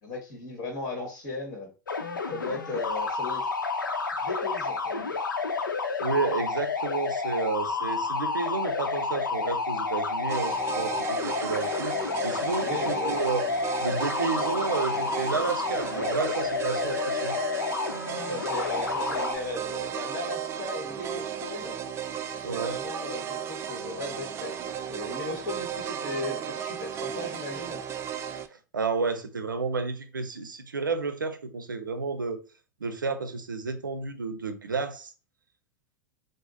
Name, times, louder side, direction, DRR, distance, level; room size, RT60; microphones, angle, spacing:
voice 1, 0.0-1.7 2.3-3.5 4.2-5.3 12.6-13.2 18.3-21.8 22.5-27.8, left 2 dB, 40° left, 1.3 m, -37 dB
sound 1, 1.9-19.4, left 4 dB, 80° left, 0.6 m, -30 dB
voice 2, 6.0-13.4 13.8-17.4 22.4-22.8 28.7-32.4 32.8-35.1, right 4 dB, 80° right, 0.6 m, -31 dB
sound 2, 10.3-28.5, right 8 dB, 25° right, 0.4 m, -35 dB
4.9 x 2.0 x 3.8 m
figure-of-eight pair, 90°, 11 cm